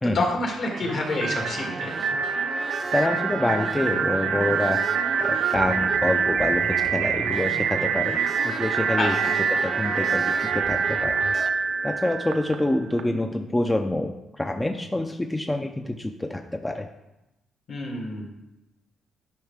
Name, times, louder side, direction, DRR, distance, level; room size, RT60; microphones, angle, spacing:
voice 1, 0.1-2.0 9.0-9.3 17.7-18.3, left 2 dB, 60° left, -1 dB, 2.5 m, -28 dB
sound 1, 0.6-11.5, right 4 dB, 45° right, 0.6 m, -34 dB
sound 2, 1.2-13.0, right 6 dB, 85° right, 0.7 m, -26 dB
voice 2, 2.9-8.2 8.4-9.1 9.5-11.2 11.8-16.9, left 1 dB, 15° left, 4 dB, 0.5 m, -27 dB
10.5 x 5.6 x 3.6 m, 0.94 s
cardioid pair, 90°, 0 cm